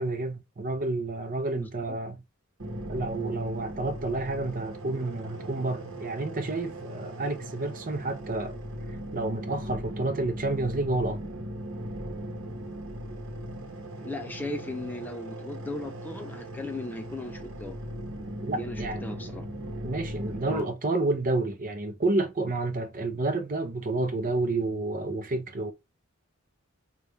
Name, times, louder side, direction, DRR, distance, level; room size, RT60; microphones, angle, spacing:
voice 1, 0.0-2.2 2.9-8.6 9.1-11.3 18.4-19.0 19.8-25.7, right 2 dB, 40° right, 0.6 m, -30 dB
voice 2, 1.5-2.0 14.0-17.8 18.5-19.5 20.5-20.7, left 2 dB, 10° left, 0.4 m, -37 dB
sound 1, 2.6-20.6, equal, 65° right, 1.0 m, -38 dB
4.0 x 2.4 x 3.4 m
head